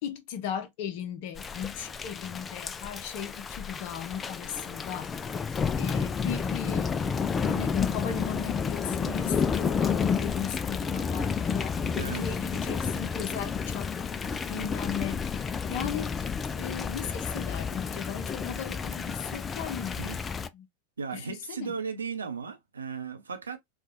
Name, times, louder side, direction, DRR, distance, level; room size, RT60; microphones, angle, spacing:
voice 1, 0.0-5.1 5.8-7.1 7.4-13.9 14.5-16.3 16.5-20.2 20.5-20.7 21.1-21.7, left 8 dB, 50° left, 0.8 m, -37 dB
Thunder / Rain, 1.4-20.5, left 6 dB, 20° left, 0.3 m, -31 dB
voice 2, 21.0-23.6, right 5 dB, 75° right, 0.7 m, -36 dB
4.4 x 2.4 x 2.6 m
figure-of-eight pair, 90°, 0 cm